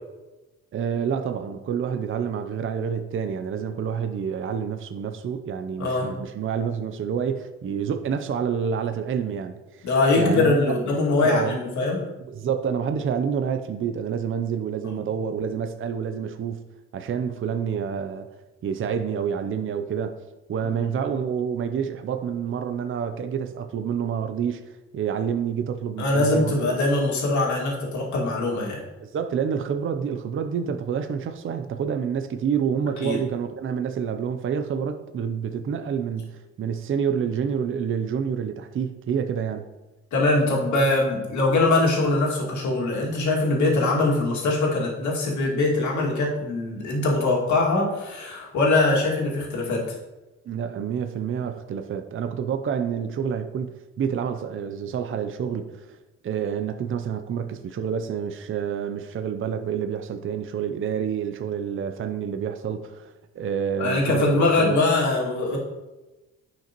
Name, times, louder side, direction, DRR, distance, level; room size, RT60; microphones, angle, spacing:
voice 1, 0.7-9.9 10.2-10.7 11.2-11.6 12.3-16.6 16.9-18.3 18.6-20.2 20.5-24.6 24.9-26.5 29.0-39.7 50.5-56.0 56.2-64.8, right 7 dB, 45° right, 8 dB, 0.6 m, -28 dB
voice 2, 9.8-12.0 14.8-15.0 20.6-20.8 26.0-28.8 33.0-33.2 40.1-49.8 63.8-65.6, left 2 dB, 70° left, -3 dB, 2.2 m, -22 dB
9.8 x 5.9 x 2.9 m, 1.1 s
cardioid pair, 90°, 30 cm